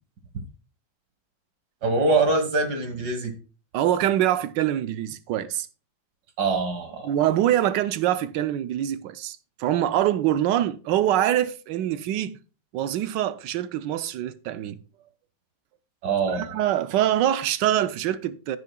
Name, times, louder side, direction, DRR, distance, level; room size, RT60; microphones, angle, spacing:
voice 1, 1.8-3.3 6.4-7.1 16.0-16.5, right 3 dB, 60° right, 2.0 m, -24 dB
voice 2, 3.7-5.7 7.0-12.4 12.7-14.8 16.3-18.6, right 12 dB, 75° right, 1.3 m, -24 dB
15.0 x 6.8 x 2.2 m
omnidirectional pair, 2.1 m